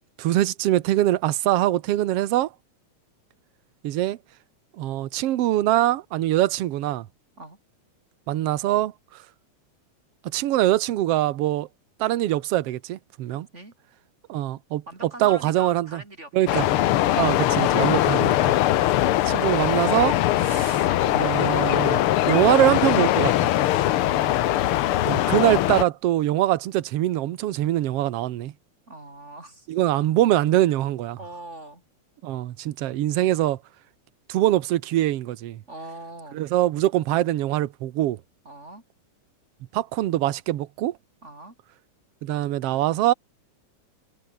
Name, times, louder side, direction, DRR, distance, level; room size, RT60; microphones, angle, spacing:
voice 1, 0.2-2.5 3.8-4.2 4.8-7.1 8.3-8.9 10.2-11.7 12.0-13.5 14.3-16.0 16.3-16.7 17.2-18.4 19.3-23.5 25.1-28.5 29.7-31.2 32.2-33.6 34.3-35.6 36.3-38.2 39.7-41.0 42.2-43.1, right 14 dB, 65° right, 1.7 m, -23 dB
voice 2, 13.3-13.7 14.9-16.7 23.9-24.9 28.9-29.7 31.2-31.8 35.7-36.4 38.4-38.8 41.2-41.6, right 2 dB, 20° right, 4.0 m, -42 dB
sound 1, 16.5-25.8, left 13 dB, 80° left, 1.2 m, -21 dB
omnidirectional pair, 3.5 m